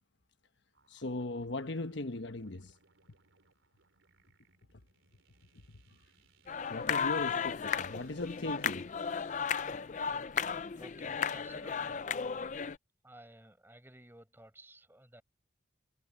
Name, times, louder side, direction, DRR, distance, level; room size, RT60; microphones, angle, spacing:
sound 1, 0.7-12.6, right 4 dB, 85° right, 3.7 m, -70 dB
voice 1, 0.9-2.7 6.7-8.9, left 2 dB, 65° left, 1.1 m, -38 dB
sound 2, 6.5-12.8, left 7 dB, 40° left, 0.4 m, -35 dB
voice 2, 10.5-12.3 13.0-15.2, right 1 dB, 10° right, 5.3 m, -56 dB
head